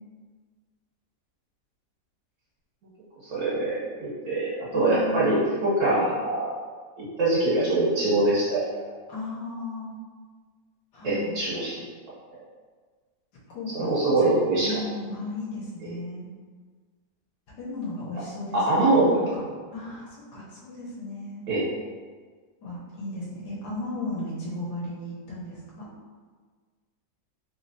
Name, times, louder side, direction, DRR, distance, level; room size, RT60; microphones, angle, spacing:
voice 1, 3.2-6.6 7.2-8.8 11.0-11.8 13.7-14.8 18.5-19.2 21.5-21.6, right 2 dB, 65° right, -9 dB, 1.5 m, -23 dB
voice 2, 4.7-5.4 9.1-9.9 10.9-11.3 13.5-16.3 17.6-19.4 19.7-21.4 22.6-25.9, left 2 dB, 75° left, -5 dB, 1.4 m, -35 dB
3.4 x 3.1 x 2.6 m, 1.5 s
omnidirectional pair, 1.9 m